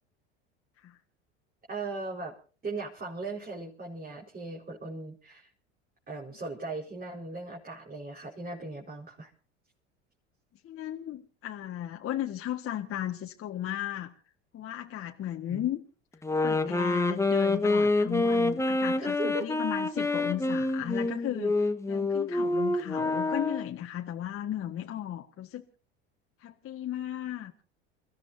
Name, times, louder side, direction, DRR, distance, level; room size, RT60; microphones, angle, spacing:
voice 1, 1.7-2.3 2.6-5.5 6.1-9.3 15.5-15.7 19.0-19.5, right 3 dB, 25° right, -1 dB, 4.8 m, -38 dB
voice 2, 10.6-14.1 14.5-15.8 16.4-25.6 26.4-27.6, left 12 dB, 40° left, 2 dB, 1.7 m, -35 dB
sound 1, 16.2-23.8, left 2 dB, 10° left, 1.4 m, -27 dB
29.5 x 15.0 x 2.7 m, 0.39 s
hypercardioid pair, 75°, 33 cm